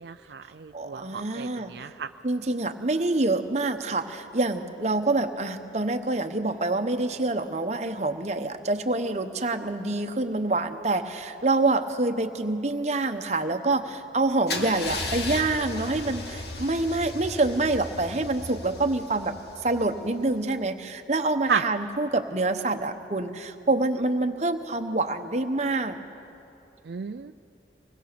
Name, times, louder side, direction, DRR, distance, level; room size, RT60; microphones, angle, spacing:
voice 1, 0.0-2.1 21.5-21.6 26.8-27.3, right 6 dB, 70° right, 8 dB, 0.4 m, -32 dB
voice 2, 0.7-1.9 2.2-19.4 19.6-26.0, right 2 dB, 40° right, 7 dB, 0.9 m, -26 dB
Car / Engine starting / Idling, 14.5-20.3, left 2 dB, 70° left, 1.8 m, -36 dB
24.0 x 19.0 x 6.8 m, 2.8 s
head